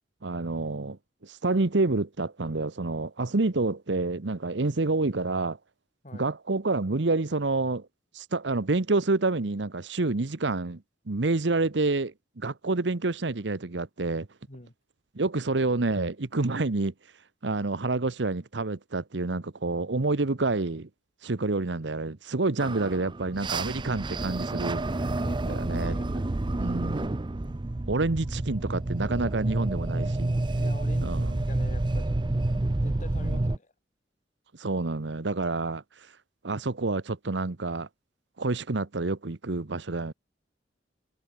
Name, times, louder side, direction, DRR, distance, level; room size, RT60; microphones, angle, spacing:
voice 1, 0.2-5.6 6.1-7.9 8.1-14.3 15.1-16.9 17.4-20.9 21.2-25.1 25.5-26.2 26.6-27.1 27.9-30.4 31.0-31.4 33.2-33.5 34.5-36.1 36.4-37.9 38.4-40.1, right 3 dB, 70° right, 1.0 m, -28 dB
sound 1, 22.6-33.6, right 2 dB, 25° right, 0.6 m, -29 dB
voice 2, 25.2-26.1 30.6-32.2 32.8-33.7, left 1 dB, 45° left, 3.5 m, -45 dB
head